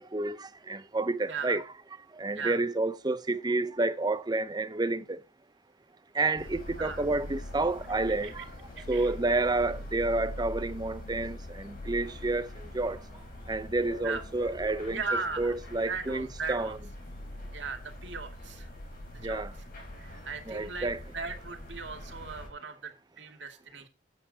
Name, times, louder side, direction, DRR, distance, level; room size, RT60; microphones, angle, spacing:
voice 1, 0.0-1.6 2.2-5.2 6.1-8.5 8.9-13.0 13.5-16.8 19.2-19.5 20.5-21.0, right 2 dB, 20° right, 0.6 m, -30 dB
voice 2, 1.3-1.6 2.3-2.6 6.7-7.1 8.2-8.5 8.8-9.1 14.0-14.2 14.9-15.5 15.9-16.8 17.5-18.7 19.2-19.4 20.0-23.9, right 4 dB, 70° right, 2.2 m, -37 dB
sound 1, 6.4-22.5, left 1 dB, 50° left, 4.1 m, -43 dB
13.0 x 8.3 x 2.7 m
head